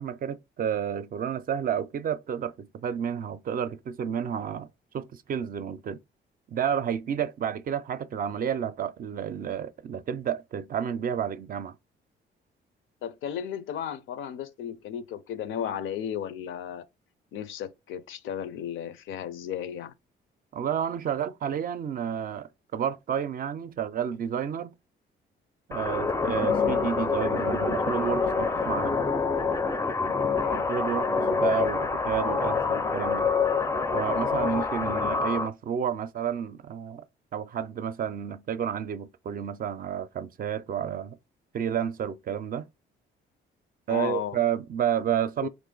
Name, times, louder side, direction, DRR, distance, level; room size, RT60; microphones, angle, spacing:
voice 1, 0.0-4.7 4.9-6.0 6.5-11.8 20.5-24.7 25.7-29.0 30.5-33.3 33.9-37.0 37.3-41.2 41.5-42.7 43.9-45.5, right 8 dB, 45° right, 0.4 m, -30 dB
voice 2, 13.0-16.8 17.3-19.9 30.4-30.7 43.9-44.4 45.4-45.5, left 9 dB, 80° left, 0.5 m, -34 dB
sound 1, 25.7-35.5, left 4 dB, 15° left, 0.4 m, -26 dB
3.0 x 2.5 x 3.8 m
cardioid pair, 90°, 20 cm